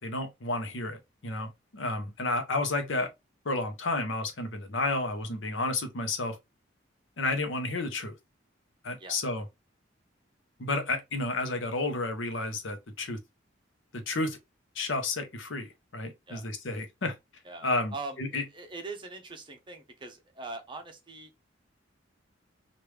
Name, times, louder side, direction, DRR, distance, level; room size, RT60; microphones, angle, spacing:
voice 1, 0.0-3.1 3.4-6.4 7.2-8.1 8.8-9.5 10.6-13.2 13.9-14.4 14.7-17.2 17.6-18.4, left 2 dB, 70° left, 0.8 m, -31 dB
voice 2, 17.4-21.3, right 3 dB, 25° right, 0.7 m, -42 dB
3.2 x 2.5 x 3.3 m
head